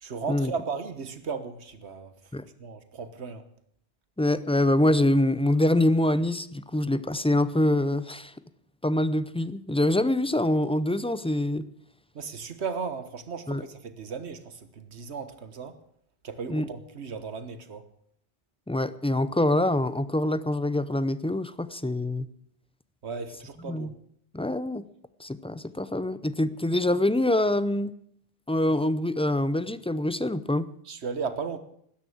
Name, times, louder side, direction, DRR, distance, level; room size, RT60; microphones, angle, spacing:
voice 1, 0.0-2.1 2.4-3.4 12.1-15.8 16.2-17.9 23.0-23.9 30.9-31.6, right 5 dB, 90° right, 1.5 m, -35 dB
voice 2, 4.2-8.3 8.8-11.7 13.5-13.6 16.5-16.7 18.7-22.3 23.7-23.9 24.3-24.8 25.2-27.9 28.5-30.7, left 1 dB, 10° left, 0.3 m, -25 dB
13.0 x 10.5 x 8.6 m
omnidirectional pair, 1.1 m